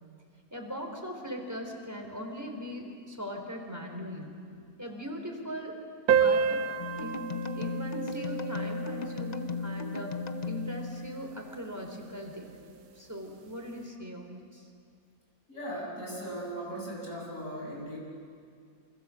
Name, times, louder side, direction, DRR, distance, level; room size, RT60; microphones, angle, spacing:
voice 1, 0.5-4.3 4.8-5.8 6.1-6.7 7.0-10.2 10.4-12.5 13.0-14.7, equal, 10° right, 2 dB, 4.1 m, -40 dB
sound 1, 6.1-11.1, right 7 dB, 85° right, 1.6 m, -31 dB
sound 2, 6.8-11.6, left 4 dB, 35° left, 0.8 m, -36 dB
voice 2, 15.5-18.0, right 1 dB, 60° left, -3 dB, 7.8 m, -38 dB
28.5 x 25.0 x 7.7 m, 2.3 s
omnidirectional pair, 1.6 m